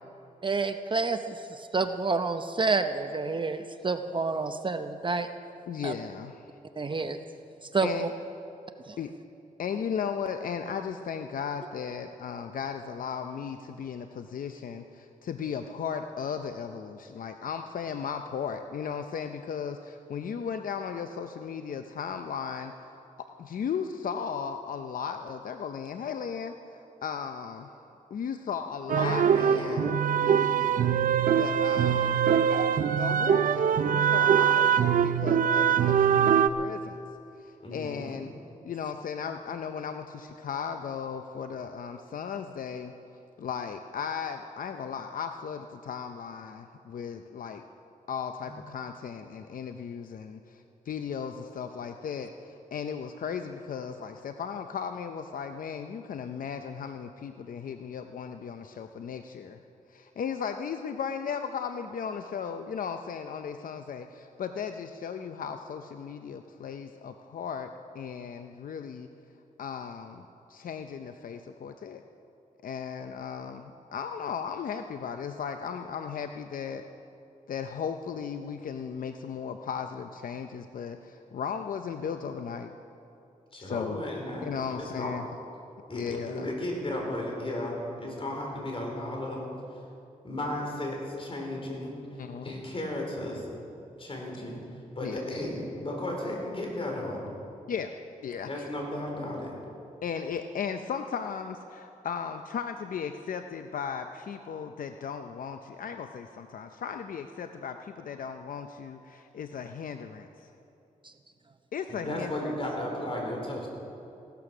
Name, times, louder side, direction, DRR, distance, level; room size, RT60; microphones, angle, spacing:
voice 1, 0.4-5.3 5.8-5.9 6.8-7.2 7.7-8.1 8.9-9.0, right 4 dB, 35° right, 8 dB, 0.7 m, -29 dB
voice 2, 5.7-6.5 7.8-8.1 9.0-9.1 9.6-22.7 23.4-27.7 28.1-29.9 30.2-30.8 31.4-32.2 32.9-37.0 37.4-38.3 38.6-42.9 43.4-47.6 48.1-59.6 59.9-67.7 67.9-69.1 69.6-72.0 72.6-76.8 77.5-82.7 83.6-84.0 84.4-85.2 85.9-86.5 92.2-92.6 95.0-95.2 97.7-98.7 100.0-110.5 111.7-112.5, left 7 dB, 70° left, 7 dB, 0.6 m, -36 dB
voice 3, 28.9-29.8 37.6-38.2 48.4-48.5 83.5-85.1 85.9-89.4 90.2-92.0 92.4-93.5 94.0-94.6 95.0-97.2 98.4-99.5 111.9-113.7, left 1 dB, 40° left, 0 dB, 4.4 m, -34 dB
sound 1, 28.9-36.5, right 8 dB, 70° right, 0.6 m, -23 dB
16.5 x 13.0 x 6.1 m, 2.7 s
cardioid pair, 75°, 15 cm